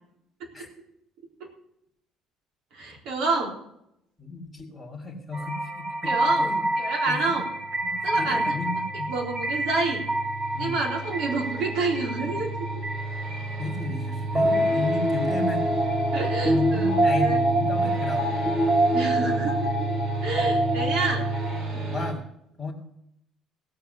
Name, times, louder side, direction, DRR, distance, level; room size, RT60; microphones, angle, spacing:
voice 1, 2.7-3.5 6.0-6.5 6.8-7.4 8.0-8.4 9.1-10.0 10.6-12.7 16.1-16.9 17.1-17.4 18.9-21.2 21.7-21.8, right 3 dB, 75° right, 0 dB, 3.9 m, -28 dB
voice 2, 4.2-6.6 7.1-7.4 7.8-9.1 10.5-10.8 13.3-15.7 16.4-18.5 20.3-20.5 21.9-22.2 22.6-22.7, left 3 dB, ahead, -2 dB, 2.0 m, -34 dB
sound 1, 5.3-21.6, right 1 dB, 20° right, 1.9 m, -26 dB
sound 2, 7.4-22.1, right 3 dB, 55° right, 4.2 m, -32 dB
17.0 x 7.4 x 6.6 m, 0.77 s
cardioid pair, 170°, 0 cm